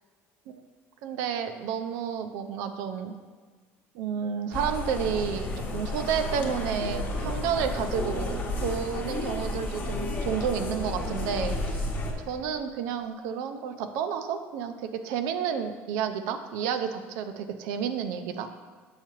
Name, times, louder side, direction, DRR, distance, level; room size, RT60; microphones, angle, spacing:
voice 1, 1.0-3.1 3.9-11.9 12.2-18.7, right 7 dB, 90° right, 8 dB, 0.5 m, -31 dB
sound 1, 4.5-12.1, left 2 dB, 35° left, 0.9 m, -32 dB
7.2 x 5.6 x 3.0 m, 1.5 s
cardioid pair, 155°, 5 cm